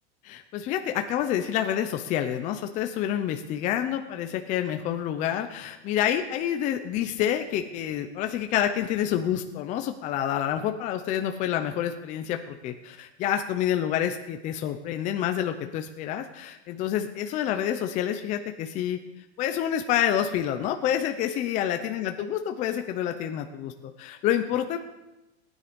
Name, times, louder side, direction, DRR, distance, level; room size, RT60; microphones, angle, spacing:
voice 1, 0.2-19.0 19.4-24.8, left 10 dB, 20° left, 6 dB, 0.7 m, -28 dB
18.0 x 9.9 x 5.2 m, 1.0 s
supercardioid pair, 160°, 34 cm